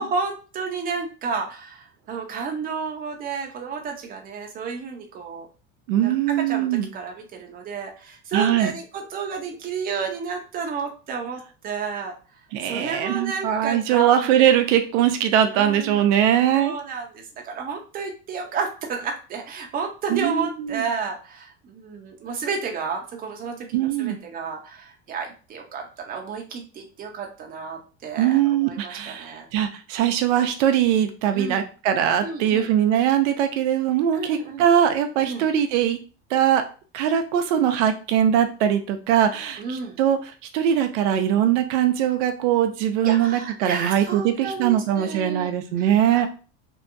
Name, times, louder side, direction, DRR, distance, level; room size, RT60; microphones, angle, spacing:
voice 1, 0.0-5.5 6.0-12.2 12.6-14.4 15.5-16.0 16.5-29.5 31.3-31.7 32.2-32.7 34.1-34.6 35.2-35.5 39.6-40.0 43.0-45.5 46.1-46.3, right 5 dB, 25° right, 2 dB, 0.6 m, -31 dB
voice 2, 5.9-6.9 8.3-8.7 12.5-16.7 20.1-20.8 23.7-24.2 28.2-36.0 36.3-36.6 36.9-40.2 40.5-46.3, right 10 dB, 85° right, 7 dB, 0.5 m, -21 dB
2.7 x 2.2 x 2.5 m, 0.35 s
supercardioid pair, 135°, 35 cm